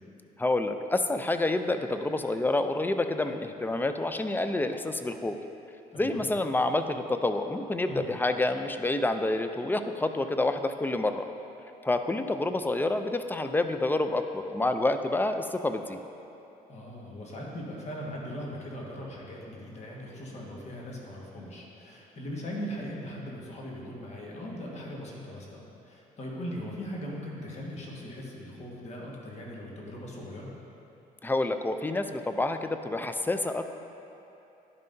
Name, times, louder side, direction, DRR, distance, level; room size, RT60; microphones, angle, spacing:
voice 1, 0.4-5.4 5.9-11.3 11.8-16.0 31.2-33.7, left 2 dB, 15° left, 8 dB, 0.4 m, -28 dB
voice 2, 5.9-6.3 7.9-8.0 16.7-30.5, equal, 45° left, -3 dB, 1.5 m, -39 dB
10.5 x 5.5 x 2.6 m, 2.9 s
cardioid pair, 85°, 15 cm